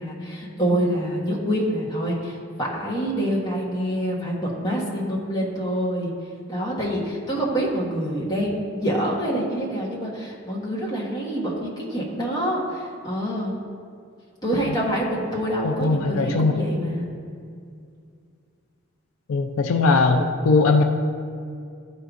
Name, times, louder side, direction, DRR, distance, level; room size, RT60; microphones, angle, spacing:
voice 1, 0.0-6.1 6.5-13.6 14.4-17.1, equal, 20° left, -4 dB, 1.1 m, -26 dB
voice 2, 15.6-16.5 19.3-20.8, left 3 dB, 80° left, 6 dB, 0.4 m, -19 dB
12.0 x 4.6 x 2.6 m, 2.3 s
head